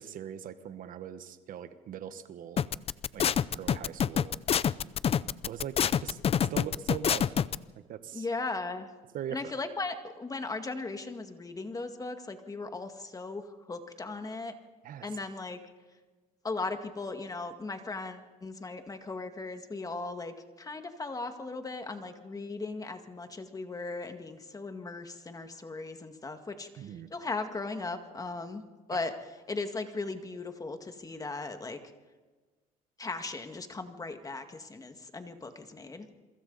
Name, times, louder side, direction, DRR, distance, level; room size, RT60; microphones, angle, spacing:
voice 1, 0.0-2.6 3.1-4.3 5.5-6.2 6.5-7.3 7.9-8.2 9.1-9.4 14.8-15.1 26.8-27.1, right 9 dB, 60° right, 11 dB, 1.3 m, -41 dB
sound 1, 2.6-7.6, left 8 dB, 40° left, 0.6 m, -26 dB
voice 2, 8.1-8.9 9.3-14.5 15.0-15.6 16.4-28.6 28.9-29.1 29.5-31.8 33.0-36.1, left 3 dB, 20° left, 7 dB, 2.0 m, -37 dB
27.5 x 23.5 x 4.1 m, 1.3 s
cardioid pair, 95°, 16 cm